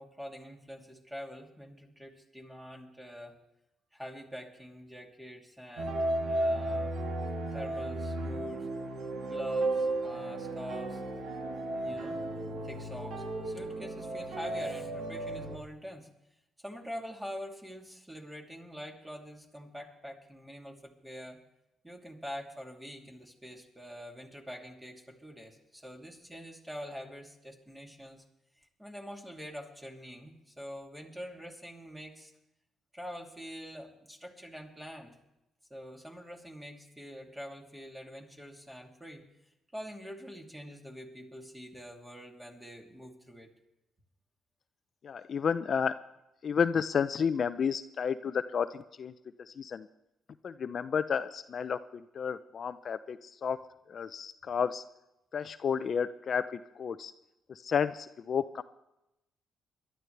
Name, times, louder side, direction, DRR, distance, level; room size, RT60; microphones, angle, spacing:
voice 1, 0.0-3.4 3.9-6.9 7.5-8.7 9.3-11.0 11.7-12.2 12.6-16.1 16.6-21.4 21.8-28.2 28.6-32.3 32.9-35.2 35.7-39.3 39.7-43.5, equal, 10° right, 1 dB, 2.7 m, -45 dB
sound 1, 5.8-15.6, right 2 dB, 75° right, 2.4 m, -34 dB
voice 2, 45.0-45.9 46.4-49.1 49.5-49.9 50.4-53.6 53.9-54.8 55.3-57.1 57.5-58.6, left 7 dB, 50° left, 12 dB, 0.5 m, -31 dB
22.0 x 12.0 x 3.3 m, 0.90 s
cardioid pair, 90°, 0 cm